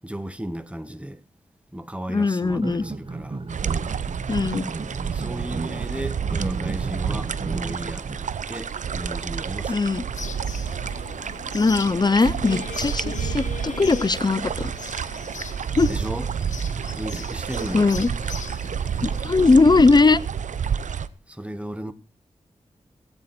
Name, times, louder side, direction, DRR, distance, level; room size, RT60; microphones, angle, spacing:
voice 1, 0.0-1.2 1.7-3.4 5.1-9.9 15.9-16.3 16.9-17.9 21.3-21.9, right 1 dB, 10° right, 1.6 m, -34 dB
voice 2, 2.1-2.8 4.3-4.7 9.7-10.0 11.5-14.7 15.7-15.9 17.7-18.1 19.0-20.2, left 3 dB, 35° left, 0.7 m, -19 dB
sound 1, 2.5-8.1, right 3 dB, 45° right, 1.5 m, -34 dB
sound 2, 3.5-21.1, right 7 dB, 75° right, 0.7 m, -29 dB
sound 3, 10.1-19.6, left 6 dB, 80° left, 1.3 m, -39 dB
17.5 x 8.8 x 4.4 m
cardioid pair, 55°, 13 cm